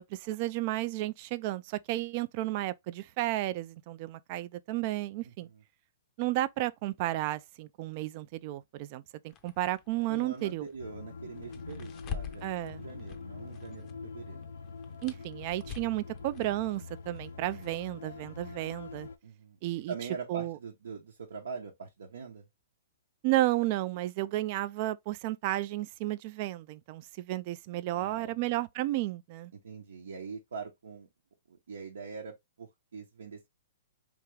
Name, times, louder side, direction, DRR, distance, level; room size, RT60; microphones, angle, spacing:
voice 1, 0.0-5.5 6.2-10.7 12.4-12.8 15.0-19.1 19.6-19.9 20.3-20.6 23.2-29.5, right 16 dB, 45° right, 0.3 m, -32 dB
voice 2, 5.2-5.6 10.1-12.4 12.8-14.4 19.2-19.6 19.9-22.5 27.9-28.3 29.5-31.1 31.5-33.5, right 5 dB, 85° right, 0.8 m, -43 dB
sound 1, 9.3-13.9 14.2-17.7, left 8 dB, 30° left, 0.5 m, -46 dB
sound 2, 10.8-19.2, left 4 dB, 85° left, 0.5 m, -44 dB
3.4 x 2.4 x 3.2 m
hypercardioid pair, 140°, 0 cm